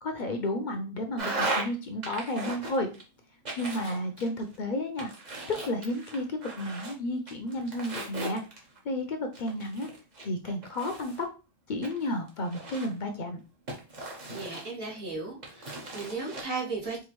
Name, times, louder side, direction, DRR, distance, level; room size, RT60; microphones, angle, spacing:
voice 1, 0.0-2.9 3.6-5.1 5.5-8.4 8.8-9.9 10.2-11.3 11.7-13.4, left 1 dB, 55° left, 5 dB, 0.6 m, -32 dB
sound 1, 1.2-1.7 2.0-3.0 3.4-4.6 5.0-6.9 7.3-8.8 9.3-11.2 11.8-13.0 13.7-15.0 15.4-16.4, right 2 dB, 45° right, 1.1 m, -37 dB
voice 2, 14.3-17.0, right 3 dB, 65° right, -6 dB, 2.0 m, -35 dB
4.8 x 2.3 x 3.0 m, 0.33 s
omnidirectional pair, 1.1 m